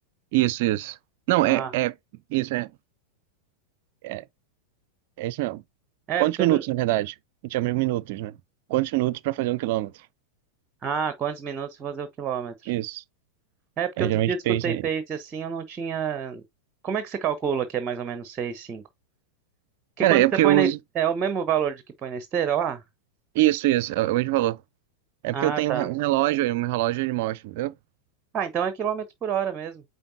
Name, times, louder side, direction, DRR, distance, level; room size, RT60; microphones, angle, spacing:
voice 1, 0.3-1.0 1.3-1.9 2.3-2.7 4.0-4.2 5.2-5.6 6.2-7.1 7.5-8.3 8.7-9.9 12.7-13.0 14.0-14.8 20.0-20.8 23.3-24.6 25.2-27.7, right 16 dB, 50° right, 0.4 m, -24 dB
voice 2, 10.8-12.7 13.8-16.4 16.8-18.8 20.0-20.7 21.0-22.8 25.3-25.9 28.3-29.8, right 7 dB, 25° right, 0.9 m, -28 dB
8.9 x 4.0 x 2.8 m
figure-of-eight pair, 90°, 0 cm